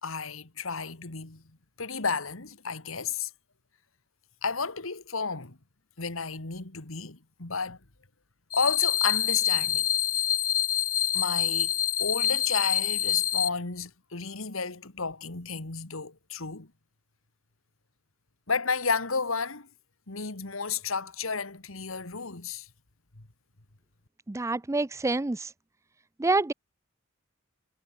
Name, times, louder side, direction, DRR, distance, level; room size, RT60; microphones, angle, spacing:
voice 1, 0.0-1.4 1.8-3.3 4.4-5.6 6.0-7.8 8.5-9.9 11.1-11.7 12.0-16.7 18.5-19.7 20.1-22.7, left 5 dB, 75° left, 2.2 m, -32 dB
sound 1, 8.5-13.5, left 10 dB, 45° left, 1.7 m, -26 dB
voice 2, 24.3-25.5 26.2-26.5, right 2 dB, 15° right, 0.5 m, -27 dB
head